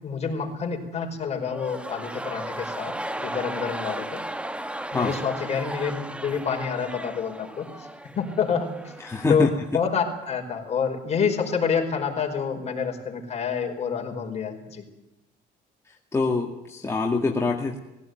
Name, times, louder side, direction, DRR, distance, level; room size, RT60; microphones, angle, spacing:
voice 1, 0.0-4.2 4.9-7.9 8.1-8.9 9.3-14.8, left 6 dB, 40° left, 3 dB, 5.0 m, -28 dB
sound 1, 1.4-9.5 9.8-9.9, right 1 dB, 5° right, 1.0 m, -35 dB
voice 2, 9.0-9.5 16.1-17.8, left 3 dB, 15° left, 0 dB, 2.2 m, -24 dB
19.5 x 16.5 x 9.4 m, 0.97 s
cardioid pair, 110°, 17 cm